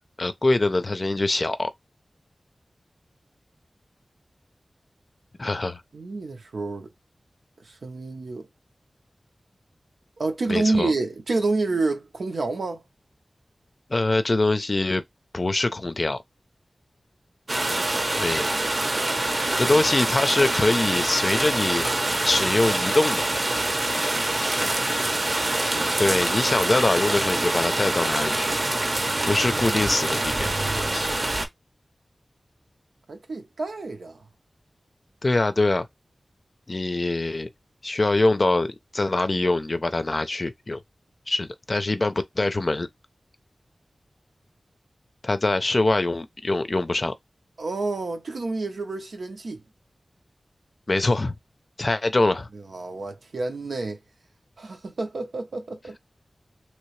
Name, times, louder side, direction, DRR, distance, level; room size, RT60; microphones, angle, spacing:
voice 1, 0.2-1.7 5.4-5.8 10.5-10.9 13.9-15.0 15.3-16.2 18.1-18.5 19.6-21.9 22.2-23.3 26.0-28.5 29.2-31.1 35.2-35.9 36.7-37.5 37.8-40.8 41.3-42.9 45.2-47.1 50.9-51.3 51.8-52.5, left 2 dB, 45° left, 0.5 m, -23 dB
voice 2, 5.9-6.9 7.6-8.5 10.2-12.8 18.5-19.2 19.5-19.6 33.1-34.2 47.6-49.6 52.5-54.0 54.6-56.0, right 3 dB, 85° right, 0.7 m, -29 dB
sound 1, 17.5-31.5, right 2 dB, 45° right, 0.7 m, -25 dB
3.1 x 2.8 x 3.1 m
wide cardioid pair, 80°, 0 cm